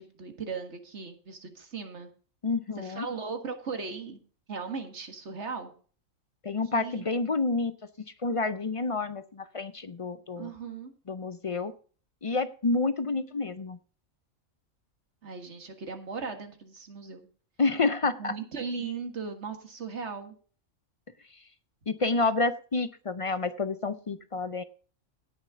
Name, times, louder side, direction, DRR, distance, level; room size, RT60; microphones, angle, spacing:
voice 1, 0.0-2.1 2.8-4.2 4.5-5.7 6.7-7.0 10.4-10.9 15.2-17.3 18.2-20.4, right 5 dB, 55° right, 6 dB, 2.0 m, -37 dB
voice 2, 2.4-3.1 6.4-7.7 8.2-10.5 11.1-11.7 12.2-13.8 17.6-18.3 21.9-24.6, left 3 dB, 45° left, 13 dB, 0.4 m, -29 dB
17.5 x 6.5 x 3.7 m, 0.41 s
omnidirectional pair, 1.4 m